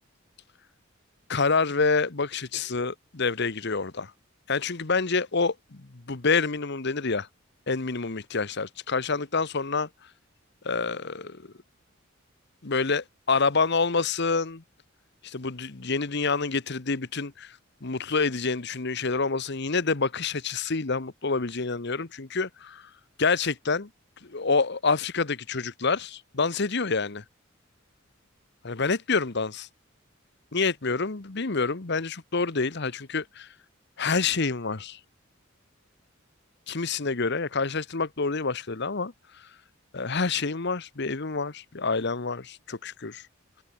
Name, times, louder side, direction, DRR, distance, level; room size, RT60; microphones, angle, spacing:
voice 1, 1.3-4.1 4.5-7.3 7.7-9.9 10.6-11.5 12.6-14.6 15.2-22.8 23.2-23.9 24.2-27.2 28.6-29.7 30.5-33.5 34.0-35.0 36.7-39.1 39.9-43.2, left 4 dB, 55° left, 1.2 m, -27 dB
head